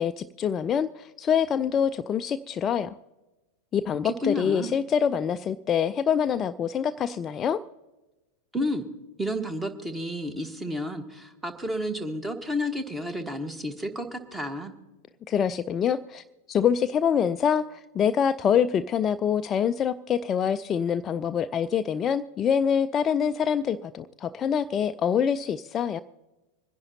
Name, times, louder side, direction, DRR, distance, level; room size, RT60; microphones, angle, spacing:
voice 1, 0.0-2.9 3.7-7.6 15.3-26.0, left 8 dB, 25° left, 11 dB, 0.3 m, -25 dB
voice 2, 4.0-4.7 8.5-8.9 9.2-14.7, left 1 dB, 10° right, 9 dB, 1.4 m, -31 dB
26.0 x 10.5 x 2.8 m, 1.1 s
figure-of-eight pair, 90°, 0 cm